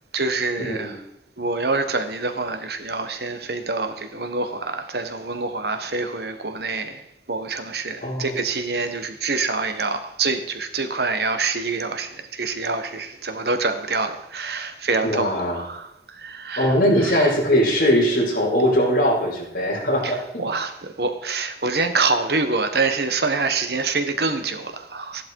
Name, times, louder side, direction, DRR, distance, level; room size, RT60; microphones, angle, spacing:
voice 1, 0.1-1.0 1.4-17.4 20.0-25.2, right 3 dB, 65° right, 1.3 m, -26 dB
voice 2, 8.0-8.3 15.0-15.6 16.6-20.4, equal, 50° left, 5.6 m, -20 dB
14.0 x 11.5 x 4.7 m
head